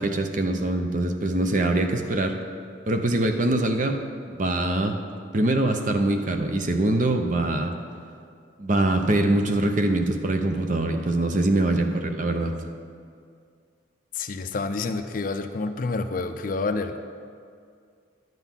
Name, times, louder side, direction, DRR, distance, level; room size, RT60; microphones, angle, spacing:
voice 1, 0.0-2.4 2.9-4.0 4.3-5.0 5.3-7.7 8.6-12.6, right 1 dB, 40° right, 5 dB, 0.6 m, -23 dB
voice 2, 14.1-17.0, left 3 dB, 45° left, 8 dB, 0.4 m, -28 dB
10.5 x 4.0 x 7.2 m, 2.2 s
head